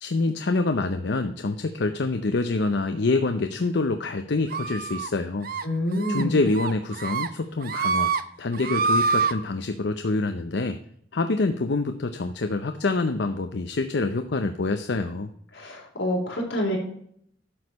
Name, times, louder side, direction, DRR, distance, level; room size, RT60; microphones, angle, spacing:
voice 1, 0.0-5.5 6.1-10.8 11.1-15.3, left 3 dB, 65° left, 7 dB, 0.6 m, -26 dB
sound 1, 4.5-5.1 5.4-5.6 6.0-6.2 6.6-7.3 7.6-8.2 8.5-9.3, right 4 dB, 55° right, 0.7 m, -25 dB
voice 2, 5.6-6.4 15.5-16.8, left 1 dB, 85° left, -1 dB, 3.6 m, -27 dB
11.0 x 6.4 x 4.1 m, 0.67 s
head